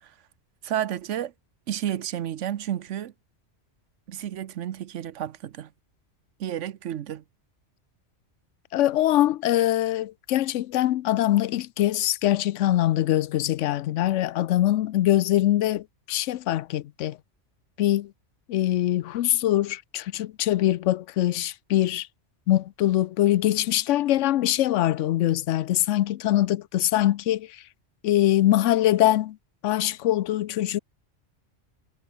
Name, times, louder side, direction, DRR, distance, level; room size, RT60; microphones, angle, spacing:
voice 1, 0.6-1.3 1.7-3.1 4.1-5.7 6.4-7.2, right 10 dB, 85° right, 1.1 m, -31 dB
voice 2, 8.7-17.2 17.8-18.1 18.5-22.1 22.5-27.6 28.0-29.4 29.6-30.8, left 13 dB, 90° left, 0.9 m, -23 dB
omnidirectional pair, 1.2 m